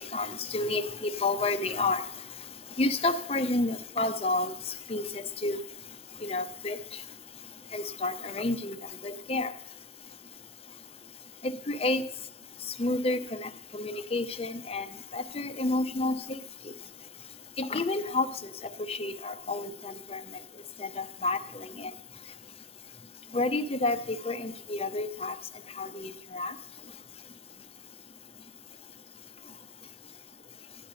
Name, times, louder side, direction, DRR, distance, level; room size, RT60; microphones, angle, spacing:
voice 1, 0.0-2.0 2.8-4.5 4.9-5.0 5.4-5.6 6.2-6.8 7.7-8.8 9.0-9.5 11.4-12.0 12.8-14.9 15.1-16.4 17.6-18.3 18.9-20.2 20.8-21.9 23.3-25.3 25.8-26.5, left 2 dB, 35° left, 10 dB, 0.6 m, -30 dB
12.5 x 10.5 x 5.2 m, 0.74 s
head